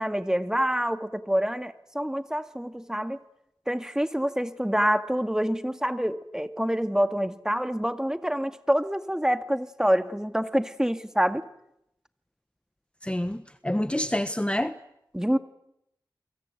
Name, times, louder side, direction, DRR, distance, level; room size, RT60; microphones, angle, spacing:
voice 1, 0.0-3.2 3.7-11.4 15.1-15.4, equal, 5° right, 9 dB, 1.9 m, -26 dB
voice 2, 13.0-14.7, left 1 dB, 15° left, 10 dB, 1.2 m, -27 dB
29.5 x 23.5 x 8.1 m, 0.79 s
wide cardioid pair, 45°, 8 cm